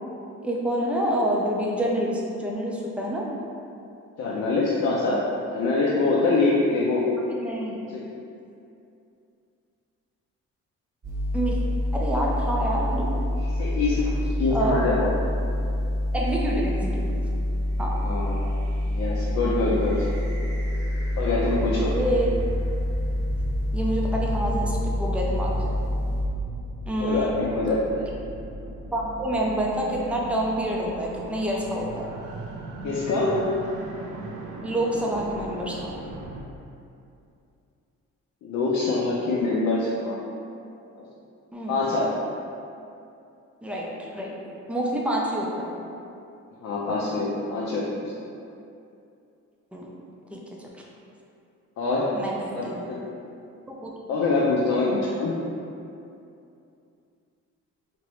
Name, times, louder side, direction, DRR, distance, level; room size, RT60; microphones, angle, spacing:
voice 1, 0.4-3.3 7.3-7.8 11.3-11.6 11.9-13.1 14.5-14.8 16.1-17.0 17.8-17.9 21.7-22.4 23.7-25.8 26.9-27.4 28.9-32.1 34.6-35.9 41.5-41.8 43.6-44.3 44.7-45.7 49.7-49.9 50.3-50.4 52.1-52.8 53.7-53.9, right 1 dB, 5° right, -3 dB, 0.4 m, -27 dB
voice 2, 4.2-5.2 5.5-7.1 7.9-8.0 13.3-15.1 18.0-18.4 18.9-20.1 21.2-21.9 27.0-28.1 32.8-33.4 38.4-40.2 40.9-41.0 41.7-42.1 46.6-48.0 51.8-52.1 52.5-53.0 54.1-55.4, left 3 dB, 60° left, -6 dB, 0.5 m, -25 dB
sound 1, 11.0-26.2, left 1 dB, 35° right, 0.9 m, -27 dB
sound 2, 17.8-36.4, right 2 dB, 90° right, 0.5 m, -39 dB
3.0 x 2.5 x 3.0 m, 2.6 s
cardioid pair, 90°, 30 cm